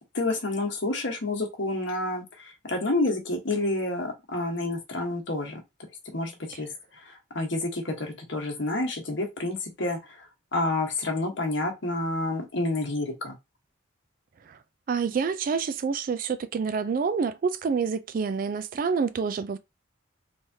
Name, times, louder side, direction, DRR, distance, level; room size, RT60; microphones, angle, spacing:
voice 1, 0.1-5.6 6.1-6.7 7.3-10.0 10.5-13.3, left 2 dB, 70° left, 1.2 m, -29 dB
voice 2, 14.9-19.6, right 5 dB, 45° right, 0.3 m, -27 dB
3.4 x 3.1 x 2.7 m
head